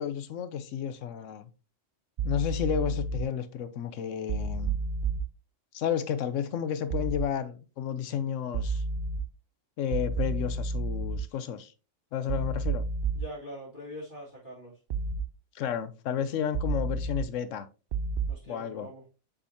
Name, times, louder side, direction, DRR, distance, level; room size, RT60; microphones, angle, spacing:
voice 1, 0.0-1.5 2.2-4.8 5.7-8.8 9.8-11.7 12.1-12.8 15.5-17.7 18.5-18.9, left 8 dB, 90° left, 1.1 m, -32 dB
sound 1, 2.2-3.2 4.3-5.2 6.9-7.2 8.5-9.2 9.9-11.2 12.3-13.2 14.9-15.2 16.5-17.2 17.9-18.3, right 3 dB, 55° right, 0.7 m, -30 dB
voice 2, 13.1-14.7 18.3-19.0, left 1 dB, 40° left, 2.3 m, -43 dB
7.0 x 5.1 x 2.7 m
omnidirectional pair, 1.3 m